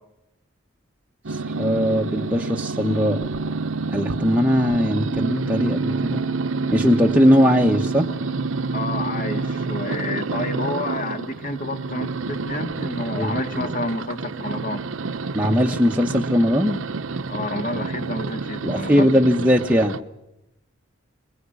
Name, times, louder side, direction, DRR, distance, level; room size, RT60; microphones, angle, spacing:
voice 1, 1.3-3.2 3.9-6.2 6.7-8.1 13.2-13.3 15.3-16.8 18.6-20.0, equal, 5° right, 0 dB, 1.0 m, -19 dB
sound 1, 1.3-20.0, right 4 dB, 80° right, 0.9 m, -28 dB
voice 2, 8.7-14.9 17.3-19.1, left 2 dB, 40° left, 7 dB, 2.4 m, -29 dB
22.5 x 21.0 x 8.3 m, 0.92 s
head